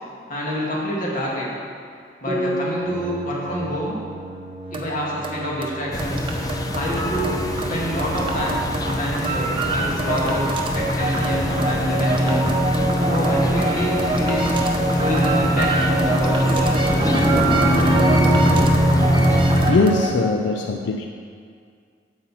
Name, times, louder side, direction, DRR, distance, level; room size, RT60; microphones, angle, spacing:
voice 1, 0.3-1.5 2.2-4.0 4.7-6.3 6.7-10.4 10.7-12.5 13.0-14.6 14.9-16.9, equal, 50° left, -4 dB, 2.1 m, -27 dB
sound 1, 2.3-5.7, equal, 5° right, 1.3 m, -32 dB
sound 2, 2.8-20.2, right 2 dB, 30° right, 0.8 m, -25 dB
sound 3, 5.9-19.7, equal, 20° left, 0.6 m, -22 dB
voice 2, 19.7-21.1, left 3 dB, 85° left, 4 dB, 0.5 m, -20 dB
9.3 x 7.7 x 4.2 m, 2.2 s
head